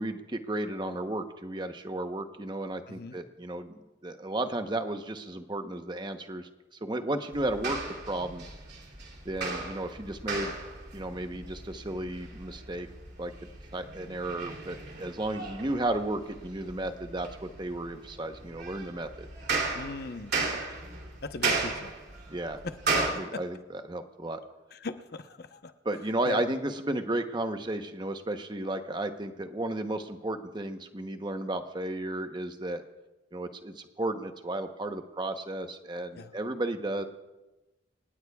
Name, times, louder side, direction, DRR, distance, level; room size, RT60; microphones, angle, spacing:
voice 1, 0.0-3.7 4.0-6.5 6.8-7.8 8.1-8.4 9.2-10.6 10.9-12.9 13.2-13.3 13.7-19.3 22.3-22.6 22.9-24.4 25.8-32.8 33.3-37.0, right 1 dB, 25° right, 7 dB, 0.9 m, -33 dB
sound 1, 7.3-23.1, right 3 dB, 60° right, 3.0 m, -36 dB
voice 2, 19.7-20.3 21.2-21.9 22.6-23.1 23.3-23.4 24.7-25.7 26.3-26.4 36.1-36.3, left 3 dB, 55° left, 9 dB, 0.9 m, -38 dB
27.5 x 18.0 x 2.4 m, 1.1 s
head